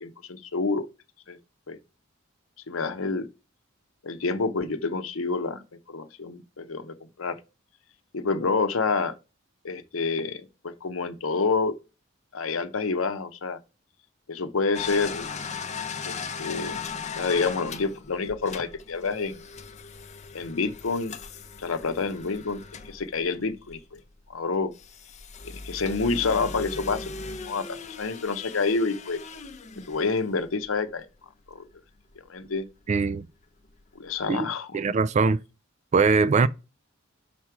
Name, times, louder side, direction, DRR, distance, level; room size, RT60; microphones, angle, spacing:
voice 1, 0.0-0.9 1.3-1.4 1.7-1.8 2.7-3.3 4.0-5.6 5.9-7.4 8.1-9.1 9.6-11.7 12.3-13.6 14.3-15.3 16.1-16.9 17.2-19.4 20.3-21.2 21.6-24.0 24.3-24.7 25.4-27.1 27.5-29.2 29.9-31.1 31.5-31.6 32.3-32.7 34.0-34.8, left 4 dB, 85° left, 0.8 m, -28 dB
sound 1, 14.7-24.1 24.7-30.7 32.1-32.2 32.6-32.7 33.8-33.9 34.1-34.3, left 5 dB, 35° left, 0.6 m, -38 dB
voice 2, 32.9-33.3 34.3-35.4 35.9-36.5, right 4 dB, 35° right, 0.3 m, -22 dB
5.9 x 4.2 x 4.7 m
head